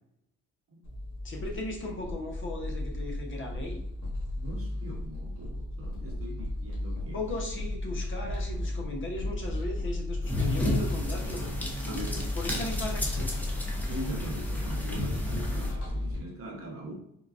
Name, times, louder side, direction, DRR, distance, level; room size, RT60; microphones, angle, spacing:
sound 1, 0.8-16.2, left 1 dB, 70° left, 1.3 m, -34 dB
voice 1, 1.2-3.8 6.0-6.1 7.1-12.1 12.4-13.4, left 2 dB, 40° left, 1 dB, 0.8 m, -37 dB
voice 2, 4.3-7.2 11.9-12.3 13.8-16.9, right 1 dB, 50° right, 0 dB, 0.9 m, -41 dB
sound 2, 10.2-15.7, left 1 dB, 5° left, 0.7 m, -33 dB
3.7 x 2.2 x 2.4 m, 0.74 s
cardioid pair, 90°, 30 cm